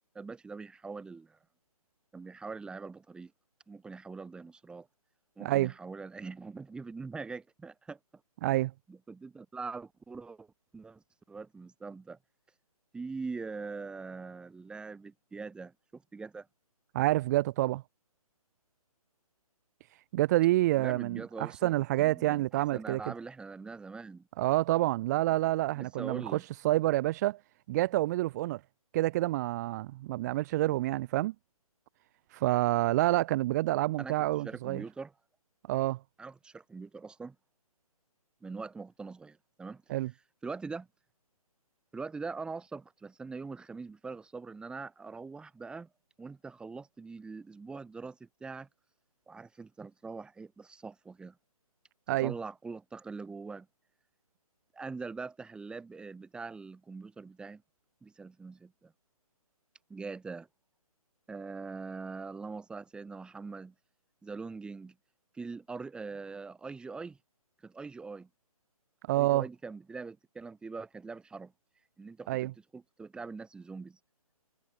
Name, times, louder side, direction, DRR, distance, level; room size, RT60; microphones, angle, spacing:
voice 1, 0.2-1.4 2.1-3.3 3.7-4.9 5.4-8.0 8.9-10.5 10.7-11.0 11.3-12.2 12.9-16.5 20.7-24.3 25.8-26.4 34.0-35.1 36.2-37.4 38.4-39.8 40.4-40.9 41.9-45.9 46.2-48.7 49.3-51.4 52.1-53.7 54.7-57.6 58.0-58.9 59.9-60.5 61.3-63.7 64.2-65.0 65.3-67.2 67.6-68.3 69.1-71.5 72.0-74.0, right 4 dB, 5° right, 3.5 m, -43 dB
voice 2, 5.4-5.7 8.4-8.7 16.9-17.8 20.1-23.0 24.4-26.4 26.6-27.4 27.7-28.6 28.9-31.3 32.3-34.8 35.7-36.0 39.9-40.1 52.1-52.3 69.1-69.4 72.3-72.5, right 17 dB, 25° right, 2.7 m, -28 dB
figure-of-eight pair, 150°, 19 cm